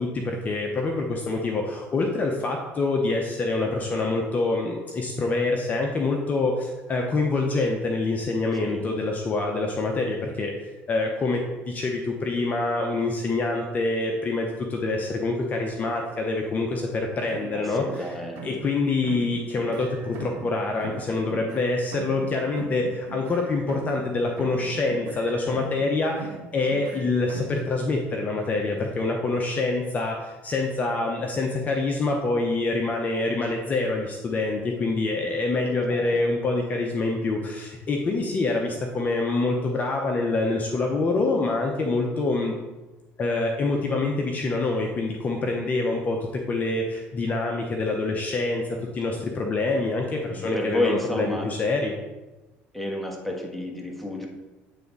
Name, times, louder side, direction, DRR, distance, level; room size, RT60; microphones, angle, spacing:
voice 1, 0.0-10.5 10.9-18.1 18.4-42.6 43.2-52.0, left 3 dB, 35° left, 1 dB, 0.8 m, -26 dB
sound 1, 17.3-18.8 19.0-20.5 20.8-24.1 24.4-25.9 26.1-27.6, right 4 dB, 70° right, 1.3 m, -40 dB
voice 2, 17.5-18.6 26.9-27.1 35.9-36.1 49.1-49.3 50.3-51.5 52.7-54.3, left 1 dB, ahead, 0 dB, 1.4 m, -31 dB
9.1 x 3.5 x 4.0 m, 1.1 s
supercardioid pair, 105°, 5 cm